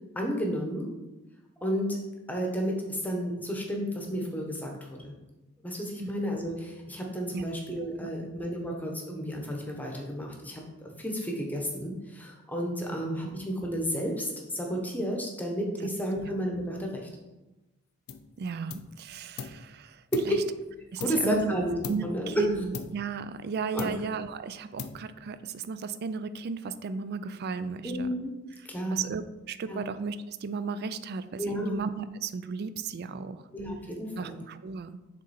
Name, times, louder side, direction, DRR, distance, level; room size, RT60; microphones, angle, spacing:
voice 1, 0.1-0.9 1.6-2.0 2.3-5.1 5.6-16.9 20.1-20.4 21.0-21.8 22.0-22.4 23.7-23.9 27.8-28.4 28.6-29.0 29.7-29.8 31.4-31.8 33.5-34.4, equal, 10° left, 0 dB, 0.9 m, -32 dB
sound 1, 18.1-18.4 18.7-19.7 20.1-21.5 21.8-22.2 22.7-23.5 23.8-24.3 24.8-25.3, left 5 dB, 80° left, 0.5 m, -41 dB
voice 2, 18.4-20.4 20.9-21.5 21.9-28.1 28.9-33.4 34.2-35.0, right 5 dB, 50° right, 13 dB, 0.3 m, -35 dB
6.6 x 3.8 x 4.2 m, 1.1 s
head